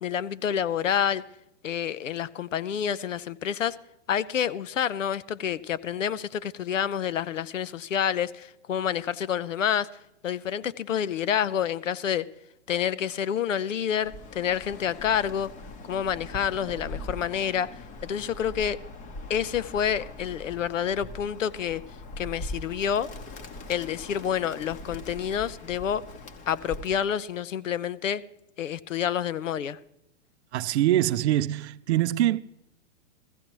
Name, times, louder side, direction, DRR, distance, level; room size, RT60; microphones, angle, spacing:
voice 1, 0.0-1.2 1.6-3.8 4.1-9.9 10.2-12.3 12.7-15.5 15.8-18.8 19.3-21.8 22.2-23.1 23.7-26.0 26.5-28.2 28.6-29.8, left 8 dB, 85° left, 0.6 m, -28 dB
Bird, 14.0-27.1, left 2 dB, 20° left, 0.8 m, -41 dB
voice 2, 30.5-32.4, right 13 dB, 65° right, 0.5 m, -24 dB
15.5 x 15.0 x 3.0 m
hypercardioid pair, 115°, 37 cm